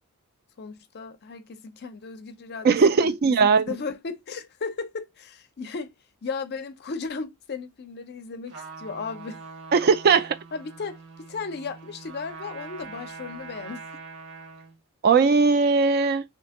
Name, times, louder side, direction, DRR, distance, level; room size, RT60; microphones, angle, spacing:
voice 1, 0.6-5.9 6.2-9.4 10.5-13.9, left 4 dB, 50° left, 0.5 m, -36 dB
voice 2, 2.6-3.7 9.7-10.4 15.0-16.2, right 5 dB, 45° right, 0.4 m, -19 dB
Trumpet, 8.5-14.8, right 4 dB, 85° right, 1.2 m, -43 dB
2.8 x 2.6 x 3.4 m
head